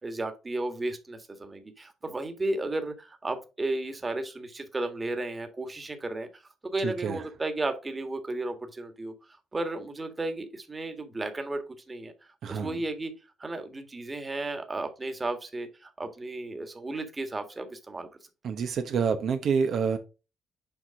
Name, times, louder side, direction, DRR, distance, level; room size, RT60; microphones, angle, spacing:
voice 1, 0.0-6.4 6.7-9.1 9.5-12.1 12.5-13.1 13.4-18.1, right 2 dB, 25° right, 1.6 m, -34 dB
voice 2, 6.8-7.2 12.4-12.8 18.4-20.0, right 6 dB, 65° right, 1.0 m, -28 dB
7.2 x 4.6 x 3.7 m
cardioid pair, 90°, 0 cm